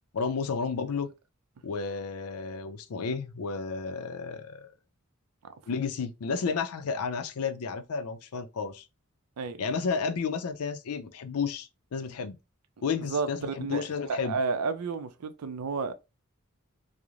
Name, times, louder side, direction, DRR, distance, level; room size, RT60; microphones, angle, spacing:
voice 1, 0.1-1.1 1.6-4.7 5.7-8.9 9.6-12.4 12.8-14.4, left 5 dB, 75° left, 0.4 m, -32 dB
voice 2, 13.0-15.9, right 4 dB, 90° right, 0.4 m, -32 dB
2.4 x 2.0 x 2.9 m
head